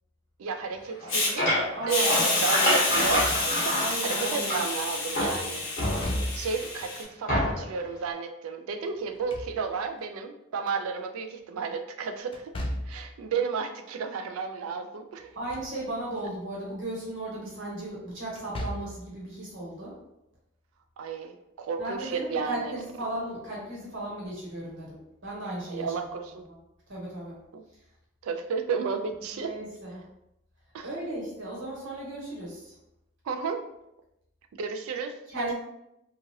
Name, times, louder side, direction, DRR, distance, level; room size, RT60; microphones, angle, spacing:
voice 1, 0.4-12.5 12.9-15.4 21.0-22.8 25.7-26.4 27.5-27.6 28.2-29.5 30.7-30.9 33.3-33.6 34.6-35.5, right 5 dB, 80° right, 7 dB, 0.4 m, -33 dB
sound 1, 0.9-4.8 5.1-6.5 7.3-7.8, left 1 dB, 40° left, 1.1 m, -28 dB
Hiss, 1.1-1.3 1.9-7.0, left 2 dB, 65° left, 1.0 m, -29 dB
voice 2, 1.8-2.3 3.7-4.6 15.3-19.9 21.8-25.9 26.9-27.4 29.3-30.0 30.8-32.7 35.3-35.5, right 1 dB, 60° right, -4 dB, 1.1 m, -36 dB
Slam / Thump thud, 2.9-3.8 5.8-6.7 9.0-10.0 12.3-13.1 15.2-15.8 16.2-16.3 18.3-19.1, equal, 25° left, 0.3 m, -36 dB
3.0 x 2.4 x 2.7 m, 0.85 s
head